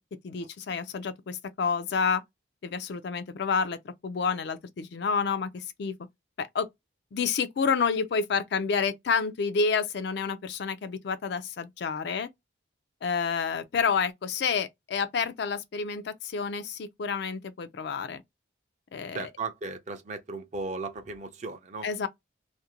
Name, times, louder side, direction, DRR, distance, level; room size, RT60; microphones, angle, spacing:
voice 1, 0.2-2.2 2.6-5.9 6.4-6.7 7.1-12.3 13.0-18.2 18.9-19.3 21.8-22.1, left 5 dB, 55° left, 0.3 m, -29 dB
voice 2, 19.1-21.9, right 3 dB, 35° right, 0.4 m, -36 dB
2.5 x 2.1 x 2.8 m
head